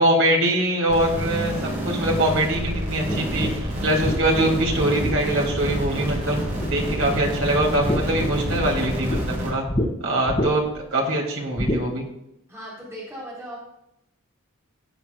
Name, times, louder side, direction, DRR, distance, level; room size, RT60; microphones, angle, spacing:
voice 1, 0.0-6.4 6.7-9.7 10.0-12.1, right 1 dB, 65° right, -1 dB, 2.7 m, -23 dB
sound 1, 0.9-9.5, equal, 35° right, 2.9 m, -28 dB
sound 2, 3.0-6.3 6.6-7.2 7.5-9.2 9.7-9.9 10.3-10.8 11.6-11.8, left 1 dB, 30° left, 2.2 m, -28 dB
voice 2, 12.5-13.6, equal, 15° right, -7 dB, 3.6 m, -37 dB
15.5 x 9.0 x 2.3 m, 0.82 s
head